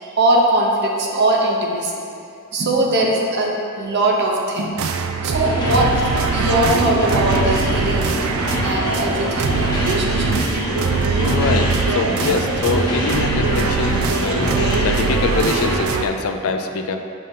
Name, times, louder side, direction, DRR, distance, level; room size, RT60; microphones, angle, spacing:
voice 1, 0.0-2.0 2.5-4.7 5.2-6.0 6.3-8.2 8.6-10.4, right 1 dB, 50° right, -1 dB, 0.8 m, -20 dB
sound 1, 4.8-16.0, right 5 dB, 65° right, 0.4 m, -22 dB
sound 2, 5.3-15.8, equal, 20° left, 0.9 m, -24 dB
voice 2, 11.1-17.0, left 4 dB, 75° left, 6 dB, 0.4 m, -24 dB
6.4 x 5.6 x 2.7 m, 2.5 s
head